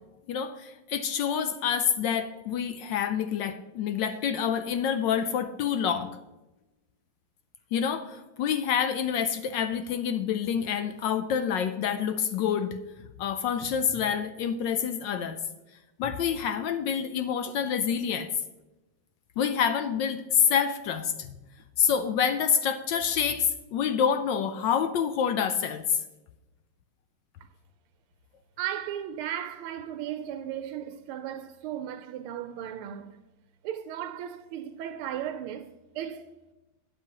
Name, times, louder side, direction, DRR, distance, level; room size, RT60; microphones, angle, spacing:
voice 1, 0.3-6.1 7.7-12.8 13.2-15.4 16.0-18.3 19.4-21.3 21.8-26.0, left 8 dB, 75° left, 1.1 m, -27 dB
voice 2, 28.6-33.2 33.6-35.7 35.9-36.3, right 10 dB, 85° right, 1.5 m, -35 dB
12.0 x 8.9 x 2.9 m
omnidirectional pair, 2.3 m